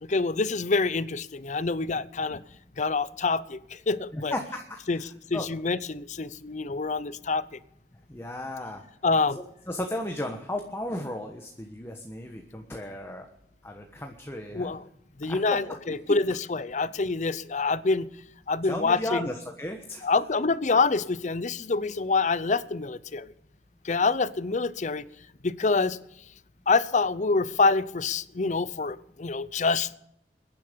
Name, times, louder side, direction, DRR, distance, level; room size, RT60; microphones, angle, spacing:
voice 1, 0.0-2.4 2.8-4.3 4.9-5.0 5.3-7.6 9.0-9.4 14.5-14.8 15.2-18.1 18.5-19.3 20.0-23.3 23.8-25.1 25.4-26.0 26.7-29.9, left 3 dB, 45° left, 17 dB, 0.6 m, -26 dB
voice 2, 4.1-5.0 5.3-5.5 8.1-8.8 9.7-13.3 13.6-14.7 15.3-15.4 16.1-16.2 18.7-20.1, left 1 dB, 15° left, 3 dB, 1.2 m, -34 dB
22.5 x 10.5 x 5.2 m, 0.79 s
head